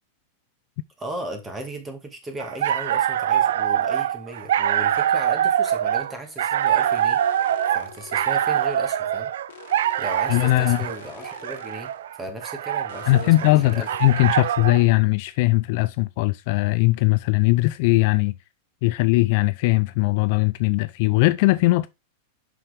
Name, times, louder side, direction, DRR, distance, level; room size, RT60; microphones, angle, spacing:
voice 1, 1.0-7.2 7.7-9.3 10.0-11.9 12.2-13.9, right 1 dB, 15° right, 1.8 m, -36 dB
sound 1, 2.4-14.8, right 10 dB, 80° right, 0.4 m, -24 dB
sound 2, 6.6-8.8 9.5-12.0 12.9-14.5 15.3-15.4, left 10 dB, 80° left, 1.3 m, -46 dB
voice 2, 10.3-10.8 13.1-18.3 18.8-21.9, left 19 dB, 55° left, 0.5 m, -19 dB
6.3 x 5.7 x 3.4 m
supercardioid pair, 150°, 0 cm